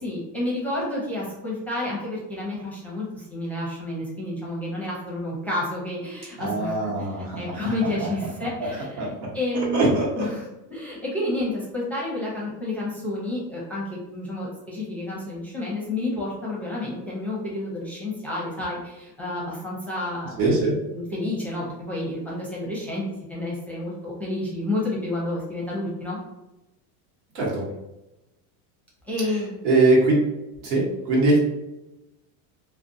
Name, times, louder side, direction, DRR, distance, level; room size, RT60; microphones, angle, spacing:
voice 1, 0.0-20.4 20.9-26.2 29.0-29.6, left 1 dB, 5° left, -6 dB, 0.6 m, -30 dB
voice 2, 6.4-7.7 8.0-8.1 9.0-9.1 9.7-10.3 20.4-20.7 27.3-27.6 29.6-30.2 30.6-31.4, right 2 dB, 80° right, -4 dB, 1.2 m, -21 dB
2.4 x 2.2 x 2.6 m, 0.94 s
supercardioid pair, 125°, 43 cm